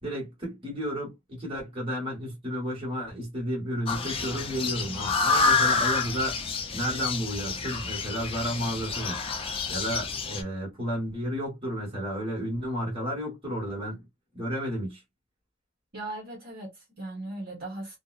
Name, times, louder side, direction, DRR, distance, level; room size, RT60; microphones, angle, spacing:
voice 1, 0.0-6.4 6.7-9.2 9.7-14.0 14.3-15.0, equal, 25° right, 1.5 m, -32 dB
sound 1, 3.9-10.4, left 4 dB, 30° left, 0.4 m, -28 dB
voice 2, 15.9-18.0, right 2 dB, 50° right, 1.0 m, -38 dB
2.6 x 2.1 x 2.4 m
head